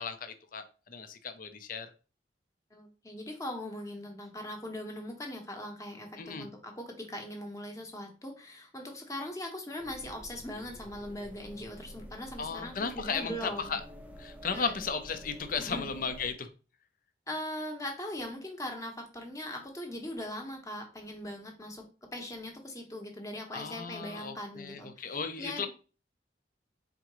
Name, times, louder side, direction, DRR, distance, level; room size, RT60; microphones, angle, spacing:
voice 1, 0.0-1.9 6.2-6.5 12.4-13.8 14.2-16.5 23.5-25.7, left 5 dB, 50° left, 9 dB, 0.6 m, -35 dB
voice 2, 2.7-13.8 14.5-14.8 15.6-15.9 17.3-21.9 22.1-25.7, left 1 dB, 20° left, 2 dB, 0.9 m, -40 dB
sound 1, 9.8-16.3, equal, 10° right, 0.5 m, -49 dB
4.4 x 3.7 x 3.0 m, 0.35 s
head